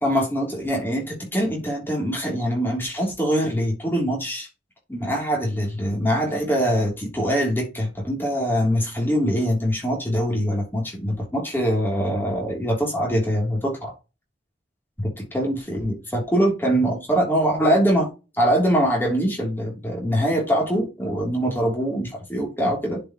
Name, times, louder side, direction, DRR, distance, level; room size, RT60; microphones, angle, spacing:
voice 1, 0.0-4.5 4.9-13.9 15.3-18.1 18.4-23.0, equal, 10° left, 3.2 m, -23 dB
10.5 x 5.1 x 3.1 m
head